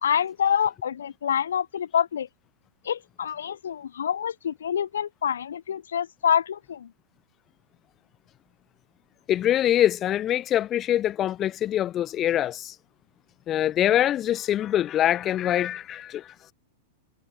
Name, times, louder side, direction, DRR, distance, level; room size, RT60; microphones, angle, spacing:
voice 1, 0.0-2.3 2.8-6.9, left 8 dB, 65° left, 0.7 m, -26 dB
voice 2, 9.3-12.7 13.5-16.5, left 11 dB, 30° left, 0.8 m, -24 dB
figure-of-eight pair, 95°, 0 cm